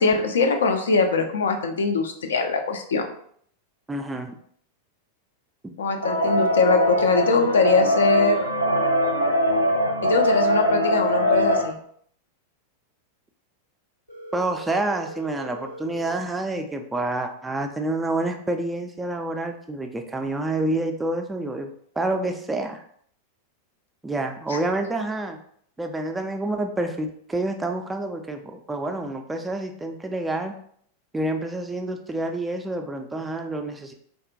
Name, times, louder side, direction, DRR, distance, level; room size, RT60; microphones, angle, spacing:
voice 1, 0.0-3.1 5.8-8.5 10.0-11.8, left 4 dB, 65° left, 5 dB, 0.4 m, -22 dB
voice 2, 3.9-4.3 14.3-21.7 22.0-22.8 24.0-25.4 25.8-30.5 31.1-33.9, right 2 dB, 10° right, 5 dB, 0.3 m, -28 dB
sound 1, 6.0-11.7, equal, 85° right, 0.4 m, -22 dB
Telephone, 14.1-16.1, right 1 dB, 90° left, 0.7 m, -40 dB
3.4 x 2.1 x 2.6 m, 0.62 s
figure-of-eight pair, 90°, 0 cm